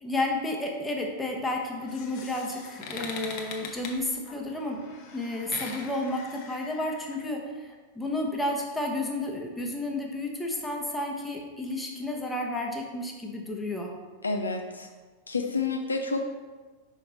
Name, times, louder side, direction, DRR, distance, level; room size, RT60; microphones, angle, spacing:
voice 1, 0.0-4.9 5.1-13.9, left 1 dB, 5° left, 0 dB, 1.0 m, -31 dB
sound 1, 1.6-7.2, left 4 dB, 45° left, 0.8 m, -42 dB
voice 2, 14.2-14.9 15.3-16.4, left 3 dB, 75° left, 4 dB, 0.5 m, -29 dB
5.6 x 5.0 x 4.1 m, 1.3 s
figure-of-eight pair, 90°, 0 cm